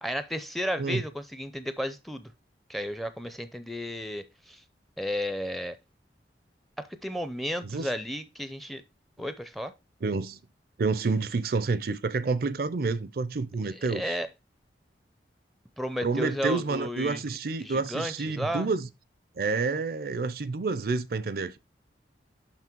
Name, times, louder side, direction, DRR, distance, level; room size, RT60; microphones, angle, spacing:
voice 1, 0.0-2.3 2.7-4.6 5.0-5.8 6.8-8.8 9.2-9.7 13.6-14.3 15.8-18.7, equal, ahead, 0.5 m, -33 dB
voice 2, 10.0-10.4 10.8-14.0 16.0-18.9 19.4-21.6, right 4 dB, 55° right, 0.5 m, -29 dB
5.9 x 5.8 x 4.4 m
head